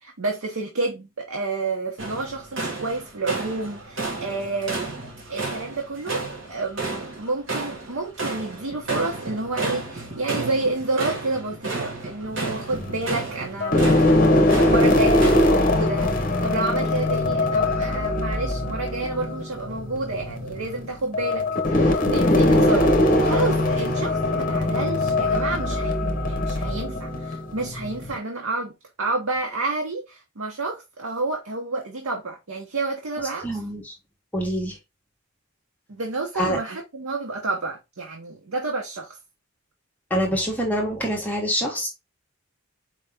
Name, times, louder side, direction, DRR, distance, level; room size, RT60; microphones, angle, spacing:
voice 1, 0.0-4.9 5.3-6.2 6.5-13.9 14.3-21.4 21.7-22.9 23.2-28.7 29.0-33.6 35.9-39.2, right 3 dB, 90° right, 0.9 m, -29 dB
sound 1, 2.0-15.5, right 3 dB, 65° right, 1.5 m, -32 dB
sound 2, 12.3-13.1 13.6-28.2, left 1 dB, 40° left, 0.9 m, -21 dB
voice 2, 33.4-33.9 34.3-34.8 36.3-36.6 40.1-41.9, equal, 10° left, 1.1 m, -25 dB
4.7 x 2.8 x 3.5 m
head